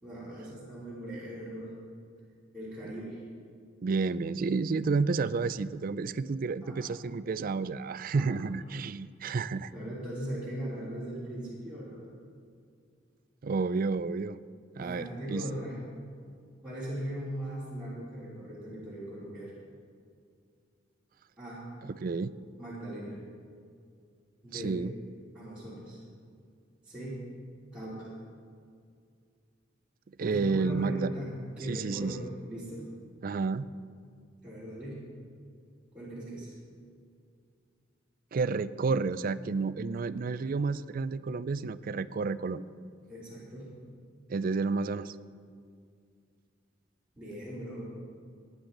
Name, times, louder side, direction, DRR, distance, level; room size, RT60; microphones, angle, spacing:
voice 1, 0.0-1.8 2.5-3.2 6.6-6.9 8.1-8.3 9.7-12.0 14.8-15.8 16.6-19.5 21.4-21.6 22.6-23.2 24.4-24.7 25.3-26.0 26.8-27.2 27.7-28.1 30.2-31.3 31.6-32.9 34.4-35.1 35.9-36.6 43.1-43.7 47.2-47.8, right 1 dB, 5° right, -11 dB, 3.1 m, -39 dB
voice 2, 3.8-9.7 13.4-14.4 14.8-15.4 22.0-22.3 24.5-24.9 30.2-31.1 31.7-32.2 33.2-33.7 38.3-42.6 44.3-45.2, right 4 dB, 50° right, 15 dB, 0.4 m, -30 dB
19.0 x 9.7 x 3.9 m, 2.2 s
head